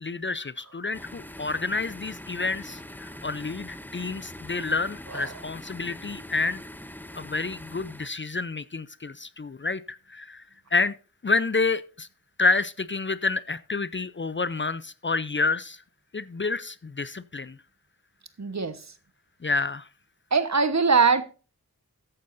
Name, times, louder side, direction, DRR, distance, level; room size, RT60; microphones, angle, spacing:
voice 1, 0.0-6.6 7.1-10.4 10.7-10.9 11.2-12.1 12.4-15.8 16.1-17.6 19.4-19.9, left 3 dB, 35° left, 0.6 m, -29 dB
sound 1, 0.9-8.1, left 1 dB, 5° left, 0.9 m, -43 dB
voice 2, 18.4-18.8 20.3-21.2, right 5 dB, 50° right, 1.2 m, -22 dB
13.5 x 9.4 x 2.6 m
cardioid pair, 40°, 34 cm